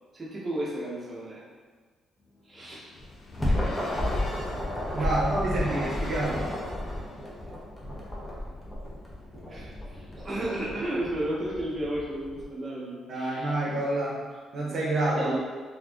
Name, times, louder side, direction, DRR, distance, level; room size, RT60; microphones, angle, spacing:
voice 1, 0.1-1.4 2.4-3.0 5.0-5.2 9.5-13.5 15.2-15.4, right 1 dB, 25° right, -6 dB, 0.9 m, -33 dB
sound 1, 2.2-7.3, left 2 dB, 50° left, 0.5 m, -43 dB
sound 2, 3.0-12.5, left 1 dB, 15° left, 0.7 m, -32 dB
voice 2, 4.9-6.5 13.1-14.2 14.5-15.3, right 2 dB, 60° right, -5 dB, 0.7 m, -28 dB
2.6 x 2.4 x 3.4 m, 1.5 s
cardioid pair, 90°, 0 cm